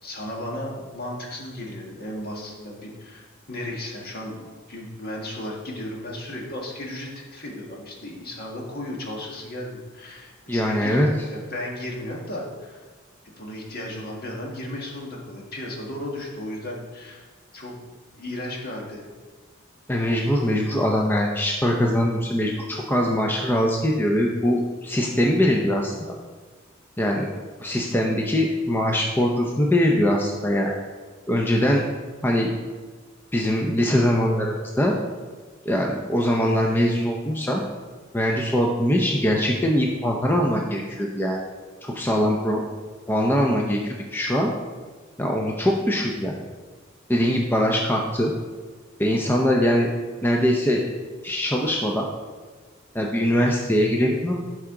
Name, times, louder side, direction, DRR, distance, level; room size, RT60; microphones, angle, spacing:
voice 1, 0.0-12.8 13.4-17.2 17.5-17.7 18.2-19.1, left 1 dB, 50° left, -1 dB, 1.6 m, -35 dB
voice 2, 10.5-11.1 19.9-26.1 27.0-27.3 27.6-30.7 31.3-31.8 32.2-32.5 33.3-34.9 35.7-37.6 38.1-41.4 41.8-42.6 43.1-44.5 45.2-46.3 47.1-48.3 49.0-49.9 50.2-50.8 51.2-52.1 52.9-54.4, equal, 10° left, 0 dB, 0.6 m, -22 dB
11.5 x 4.8 x 3.8 m, 1.4 s
head